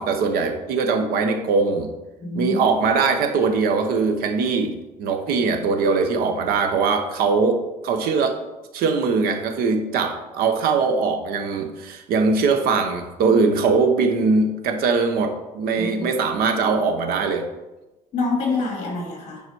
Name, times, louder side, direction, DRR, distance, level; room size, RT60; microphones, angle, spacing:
voice 1, 0.0-1.9 2.3-8.4 8.7-17.5, right 4 dB, 85° right, 6 dB, 1.1 m, -21 dB
voice 2, 2.2-2.7 15.8-16.1 18.1-19.4, left 3 dB, 50° left, 0 dB, 2.6 m, -26 dB
9.5 x 5.1 x 4.7 m, 1.0 s
cardioid pair, 170°, 15 cm